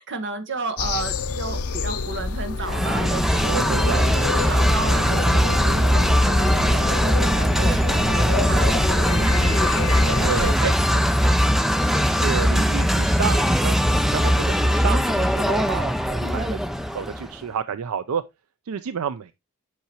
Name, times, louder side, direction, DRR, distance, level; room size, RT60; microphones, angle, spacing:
voice 1, 0.0-11.7 16.2-16.6, right 3 dB, 55° right, 1.2 m, -34 dB
sound 1, 0.8-10.5, left 3 dB, 80° left, 0.7 m, -28 dB
sound 2, 2.6-17.3, equal, ahead, 0.3 m, -20 dB
voice 2, 3.4-4.4 7.3-8.2 10.2-10.7 12.1-16.6 16.9-18.2 18.7-19.3, right 7 dB, 75° right, 0.4 m, -30 dB
8.3 x 5.8 x 2.9 m
head